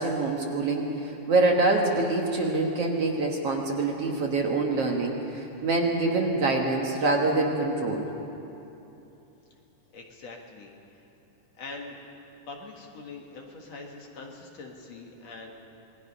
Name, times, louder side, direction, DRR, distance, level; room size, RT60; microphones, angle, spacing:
voice 1, 0.0-8.1, right 2 dB, 55° right, 0 dB, 2.2 m, -25 dB
voice 2, 9.9-11.1 11.5-12.0 12.5-15.5, left 3 dB, 55° left, 0 dB, 2.8 m, -43 dB
27.0 x 20.5 x 5.5 m, 2.9 s
omnidirectional pair, 3.8 m